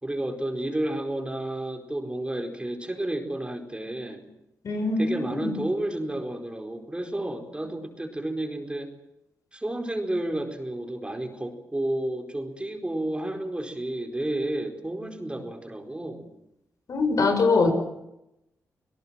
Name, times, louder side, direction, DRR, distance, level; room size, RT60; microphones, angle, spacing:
voice 1, 0.0-4.2 5.0-8.9 9.5-16.3, right 1 dB, 15° right, 4 dB, 4.5 m, -31 dB
voice 2, 4.6-5.5 16.9-17.7, left 3 dB, 60° left, 6 dB, 6.2 m, -23 dB
28.0 x 18.5 x 7.7 m, 0.86 s
cardioid pair, 60°, 6 cm